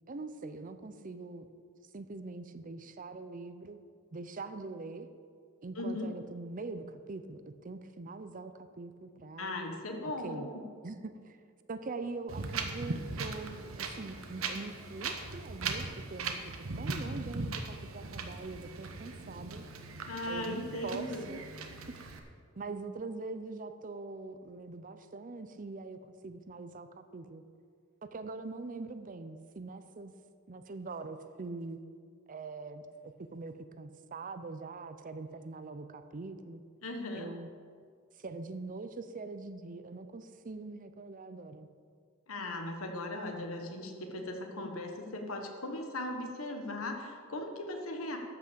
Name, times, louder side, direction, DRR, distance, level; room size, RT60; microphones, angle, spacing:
voice 1, 0.1-1.5 1.9-3.8 4.1-5.1 5.6-9.6 10.2-10.5 10.8-11.4 11.7-15.8 16.1-19.6 20.3-21.4 21.7-21.8 22.6-27.4 28.0-30.1 30.5-31.8 32.3-36.6 37.1-37.5 38.1-41.7, right 3 dB, 40° right, 10 dB, 0.6 m, -43 dB
voice 2, 5.8-6.1 9.4-10.6 20.1-21.3 36.8-37.3 42.3-48.2, left 1 dB, 85° left, 3 dB, 1.4 m, -38 dB
Wind, 12.3-22.2, right 3 dB, 85° right, 1.0 m, -39 dB
13.0 x 6.0 x 6.8 m, 2.1 s
head